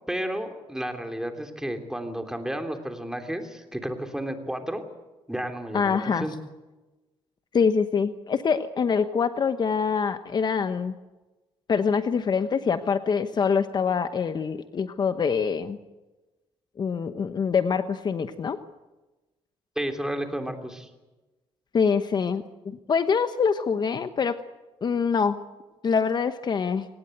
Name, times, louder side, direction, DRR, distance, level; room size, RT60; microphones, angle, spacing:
voice 1, 0.1-4.8 5.3-6.3 19.7-20.9, right 1 dB, 5° right, 5 dB, 3.2 m, -32 dB
voice 2, 5.7-6.2 7.5-10.9 11.7-15.8 16.8-18.6 21.7-24.3 24.8-25.4 25.8-26.9, left 6 dB, 45° left, 10 dB, 1.0 m, -25 dB
24.5 x 19.0 x 8.0 m, 1.1 s
cardioid pair, 100°, 11 cm